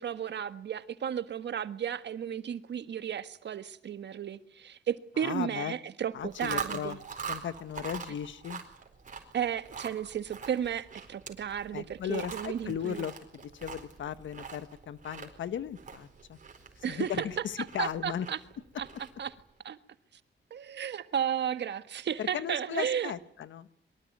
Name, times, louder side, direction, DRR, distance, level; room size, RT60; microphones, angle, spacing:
voice 1, 0.0-7.0 9.3-13.0 16.8-17.3 17.6-18.4 18.8-18.9 19.2-19.3 19.6-19.8 20.5-23.1, right 9 dB, 65° right, 1.5 m, -34 dB
voice 2, 5.2-5.7 6.1-7.0 7.3-8.6 11.7-13.1 13.5-16.4 16.9-18.3 22.2-23.7, left 9 dB, 75° left, 1.3 m, -36 dB
Chewing mastication, 6.2-19.4, right 6 dB, 40° right, 4.4 m, -43 dB
23.5 x 22.0 x 9.4 m
wide cardioid pair, 125°, 19 cm